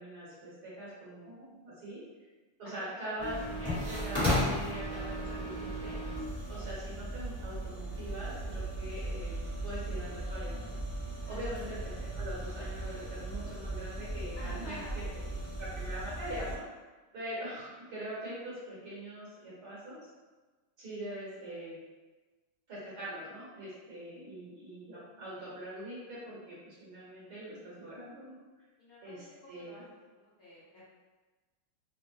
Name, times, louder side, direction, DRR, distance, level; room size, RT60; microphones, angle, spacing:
voice 1, 0.0-2.0 2.6-6.0 6.5-10.8 11.3-15.0 15.6-16.6 17.1-20.0 20.8-21.8 22.7-28.4 29.0-29.9, right 1 dB, 55° right, -8 dB, 1.4 m, -43 dB
sound 1, 3.2-16.5, equal, 5° left, 0.8 m, -36 dB
voice 2, 14.4-15.4 23.6-23.8 28.8-29.8 30.1-30.6, left 1 dB, 75° left, -9 dB, 0.8 m, -51 dB
3.5 x 2.1 x 3.0 m, 1.3 s
omnidirectional pair, 2.4 m